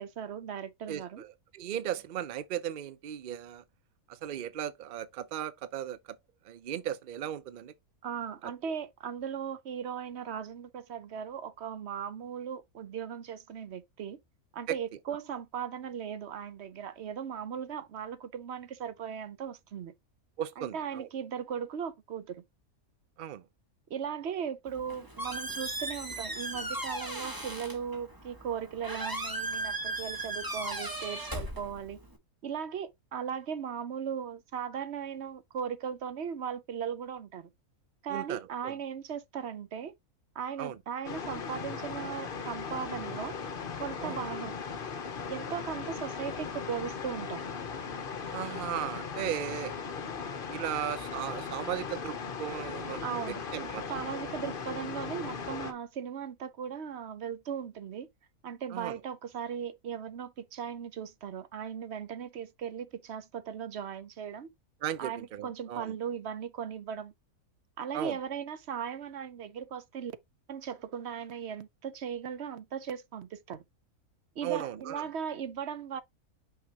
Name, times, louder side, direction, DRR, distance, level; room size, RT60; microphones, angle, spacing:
voice 1, 0.0-1.2 8.0-14.2 14.5-19.9 20.6-22.4 23.9-32.0 32.4-37.5 38.0-39.9 40.3-43.4 43.8-44.5 45.3-47.4 53.0-53.4 53.9-58.1 58.4-64.5 65.0-67.1 67.8-70.1 70.5-73.6 74.4-76.0, right 8 dB, 55° right, 0.9 m, -38 dB
voice 2, 0.9-3.6 4.1-6.2 6.4-7.7 14.7-14.8 20.4-21.1 23.2-23.4 38.1-38.7 40.6-40.8 44.0-44.2 48.2-49.8 50.5-53.8 58.7-58.9 64.8-66.0 67.9-68.2 74.4-75.1, right 10 dB, 70° right, 0.4 m, -36 dB
Squeak, 24.7-32.2, right 1 dB, 15° right, 1.3 m, -37 dB
sound 1, 41.0-55.7, left 5 dB, 45° left, 0.9 m, -38 dB
6.0 x 5.8 x 2.8 m
omnidirectional pair, 1.6 m